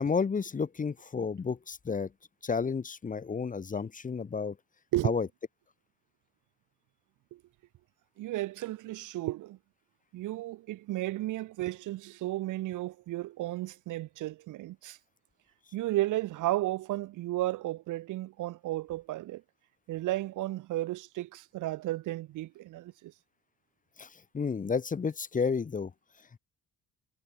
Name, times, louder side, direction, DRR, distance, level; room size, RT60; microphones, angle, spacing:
voice 1, 0.0-2.1 2.4-4.6 5.0-5.3 24.0-24.1 24.3-25.9, left 5 dB, 25° left, 0.8 m, -31 dB
voice 2, 8.2-9.6 10.1-15.0 15.7-19.4 19.9-23.1, right 16 dB, 80° right, 1.0 m, -33 dB
cardioid pair, 90°, 30 cm